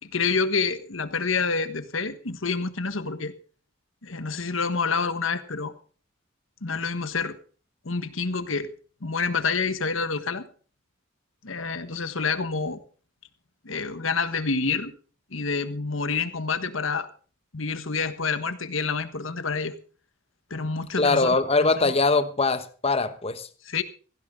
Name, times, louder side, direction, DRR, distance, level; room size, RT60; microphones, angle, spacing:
voice 1, 0.0-3.3 4.0-5.7 6.6-7.4 7.8-8.7 9.0-10.5 11.4-12.8 13.6-14.9 15.3-17.1 17.5-19.7 20.5-21.3 21.6-21.9 23.6-23.8, left 4 dB, 80° left, 1.5 m, -28 dB
voice 2, 21.0-23.5, left 3 dB, 30° left, 1.1 m, -22 dB
16.5 x 15.5 x 3.8 m
head